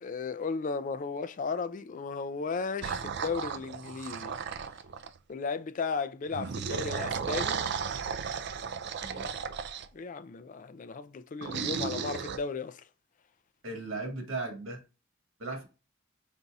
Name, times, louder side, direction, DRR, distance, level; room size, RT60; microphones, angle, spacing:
voice 1, 0.0-4.3 5.3-7.6 9.9-12.8, left 4 dB, 40° left, 0.3 m, -35 dB
sound 1, 2.8-5.2 6.3-9.9 11.4-12.4, right 6 dB, 55° right, 0.4 m, -34 dB
voice 2, 9.0-9.3 13.6-14.8 15.4-15.6, right 2 dB, 80° right, 1.5 m, -37 dB
5.2 x 4.0 x 2.3 m
head